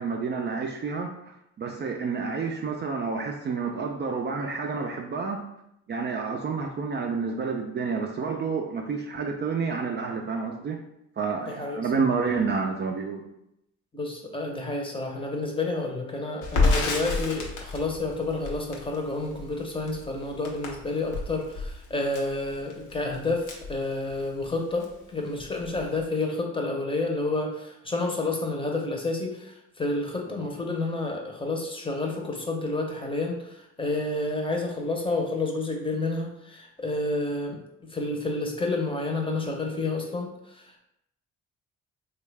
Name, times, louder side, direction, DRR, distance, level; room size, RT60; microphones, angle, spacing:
voice 1, 0.0-5.4 5.9-10.8 11.2-13.3 30.4-30.5, right 5 dB, 35° right, 2 dB, 0.4 m, -29 dB
voice 2, 11.5-12.1 13.9-37.6 37.9-40.8, left 2 dB, 15° left, 1 dB, 0.7 m, -30 dB
Crackle, 16.4-24.5 24.8-24.9 25.3-26.0, left 3 dB, 85° left, 0.8 m, -30 dB
3.3 x 2.3 x 3.3 m, 0.81 s
cardioid pair, 90°, 30 cm